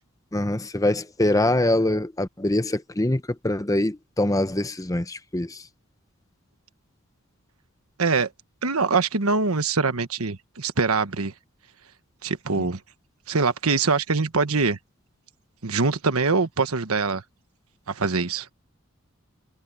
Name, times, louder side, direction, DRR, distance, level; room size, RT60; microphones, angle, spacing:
voice 1, 0.3-5.6 12.6-12.7, left 1 dB, 15° left, 0.8 m, -24 dB
voice 2, 8.0-8.3 8.6-11.3 12.2-12.8 13.3-14.8 15.6-17.2 17.9-18.5, right 4 dB, 85° right, 1.3 m, -23 dB
head